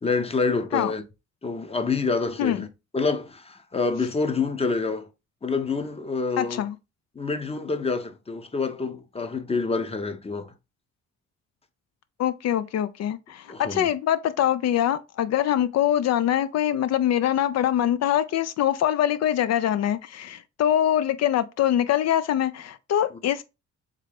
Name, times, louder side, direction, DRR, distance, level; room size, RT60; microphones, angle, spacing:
voice 1, 0.0-1.0 1.4-2.6 2.9-5.1 5.4-6.6 7.2-10.5 13.5-13.9, left 4 dB, 20° left, 0.7 m, -27 dB
voice 2, 6.4-6.8 12.2-23.4, left 11 dB, 60° left, 0.4 m, -24 dB
3.6 x 3.2 x 3.3 m
cardioid pair, 90°, 30 cm